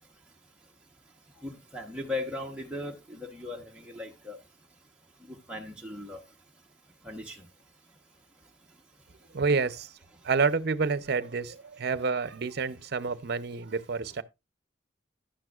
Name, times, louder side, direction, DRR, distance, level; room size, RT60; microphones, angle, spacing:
voice 1, 1.4-4.4 5.3-6.2 7.0-7.5, left 2 dB, 5° right, 1.0 m, -38 dB
voice 2, 9.3-9.9 10.2-14.2, right 4 dB, 60° right, 0.6 m, -28 dB
11.5 x 9.0 x 2.4 m
head